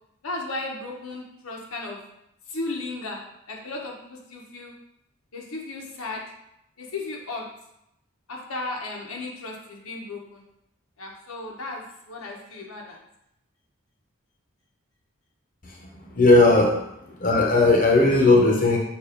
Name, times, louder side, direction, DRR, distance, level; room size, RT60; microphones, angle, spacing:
voice 1, 0.2-2.0 2.5-3.2 3.5-4.7 5.3-6.2 6.8-7.5 8.3-10.5 11.0-13.0, left 2 dB, 85° left, -1 dB, 1.2 m, -35 dB
voice 2, 16.1-16.8 17.2-18.8, left 2 dB, 40° left, -1 dB, 1.0 m, -17 dB
7.2 x 2.7 x 5.2 m, 0.81 s
head